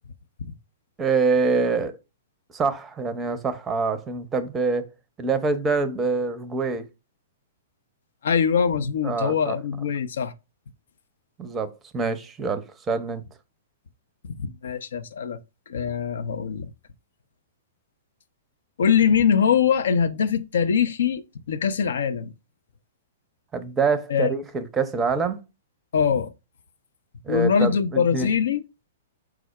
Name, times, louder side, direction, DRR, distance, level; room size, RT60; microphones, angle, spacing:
voice 1, 1.0-1.9 2.5-4.9 5.2-6.8 9.0-9.5 11.4-13.2 23.5-25.4 27.2-28.3, right 4 dB, 15° right, 0.5 m, -25 dB
voice 2, 8.2-10.3 14.4-15.4 15.7-16.7 18.8-21.2 21.5-22.3 24.1-24.3 25.9-26.3 27.3-28.6, left 7 dB, 65° left, 0.4 m, -22 dB
4.7 x 2.0 x 4.6 m
figure-of-eight pair, 110°, 0 cm